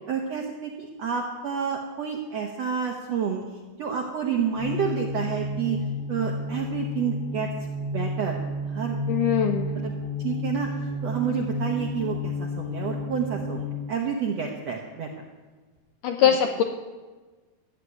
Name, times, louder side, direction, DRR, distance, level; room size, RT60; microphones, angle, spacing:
voice 1, 0.1-3.4 3.8-5.8 6.1-7.5 7.9-9.0 9.7-9.9 10.2-10.7 11.0-15.1 16.2-16.4, right 7 dB, 75° right, 1 dB, 1.5 m, -29 dB
sound 1, 4.6-13.9, left 1 dB, 60° left, 4.9 m, -31 dB
voice 2, 9.1-9.7 16.0-16.6, left 9 dB, 85° left, 5 dB, 1.9 m, -21 dB
14.5 x 7.6 x 9.4 m, 1.3 s
omnidirectional pair, 4.5 m